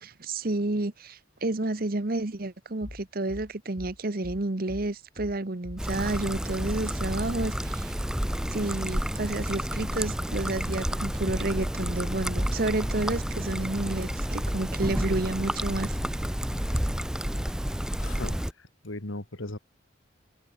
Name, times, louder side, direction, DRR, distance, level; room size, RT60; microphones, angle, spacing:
voice 1, 0.0-7.9 8.5-15.9, right 2 dB, 50° right, 1.1 m, -30 dB
sound 1, 2.8-17.6, left 2 dB, 35° left, 0.8 m, -43 dB
Trickle dribble, 5.8-18.5, equal, 5° right, 0.5 m, -30 dB
voice 2, 18.0-19.6, left 2 dB, 90° left, 2.5 m, -38 dB
head